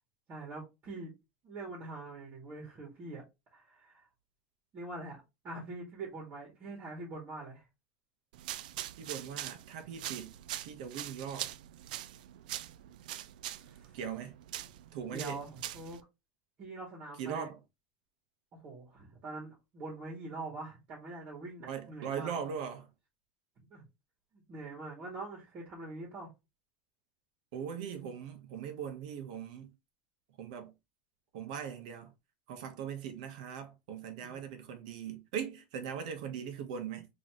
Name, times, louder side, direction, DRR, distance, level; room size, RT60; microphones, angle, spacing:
voice 1, 0.3-1.1 1.4-3.2 3.5-4.0 4.7-5.2 5.4-7.7 13.6-14.0 15.1-16.0 16.6-17.5 18.6-22.3 23.7-23.8 24.3-26.3 34.2-34.4, right 2 dB, 35° right, 2.0 m, -44 dB
sound 1, 8.3-16.0, right 13 dB, 90° right, 0.3 m, -43 dB
voice 2, 9.0-10.3 10.6-11.5 13.9-14.4 14.9-15.4 17.2-17.6 21.6-22.9 27.5-29.7 30.4-30.7 31.3-32.1 32.5-37.1, right 7 dB, 70° right, 1.1 m, -40 dB
4.1 x 3.1 x 3.0 m
supercardioid pair, 155°, 4 cm